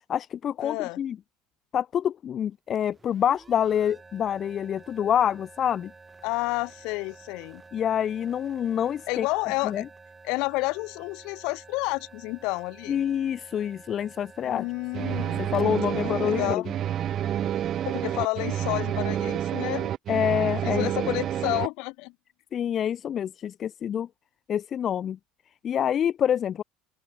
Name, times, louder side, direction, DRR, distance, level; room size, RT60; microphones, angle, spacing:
voice 1, 0.1-1.2 1.7-5.9 7.7-9.3 9.6-9.9 12.9-14.6 15.4-16.6 20.1-21.1 22.5-24.1 24.5-25.2 25.6-26.6, left 9 dB, 40° left, 0.9 m, -27 dB
voice 2, 0.6-1.0 6.2-7.6 9.1-9.8 10.2-13.0 14.4-15.5 16.0-16.7 17.8-19.9 20.6-22.1, left 26 dB, 65° left, 1.7 m, -30 dB
sound 1, 2.7-17.3, right 4 dB, 20° right, 8.0 m, -51 dB
sound 2, 14.9-21.7, right 10 dB, 45° right, 1.8 m, -28 dB
open air
hypercardioid pair, 75°, 0 cm